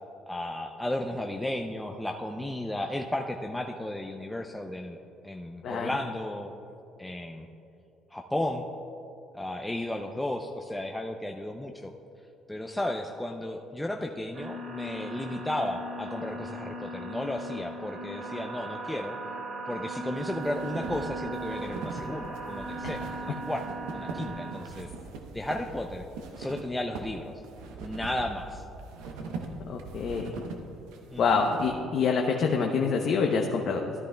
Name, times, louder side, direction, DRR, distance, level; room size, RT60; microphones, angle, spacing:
voice 1, 0.3-5.0 5.2-6.5 7.0-7.5 8.1-8.7 9.3-11.9 12.5-19.2 19.7-24.9 25.3-26.0 26.4-27.4 27.8-28.6 31.1-31.4, left 1 dB, 10° left, 3 dB, 0.5 m, -34 dB
sound 1, 14.3-24.5, right 2 dB, 45° right, 2.4 m, -38 dB
sound 2, 20.2-31.7, right 3 dB, 85° right, 0.9 m, -41 dB
voice 2, 29.7-30.3 31.2-33.9, left 5 dB, 60° left, 1 dB, 0.7 m, -26 dB
13.5 x 11.0 x 2.3 m, 2.7 s
supercardioid pair, 75°, 0 cm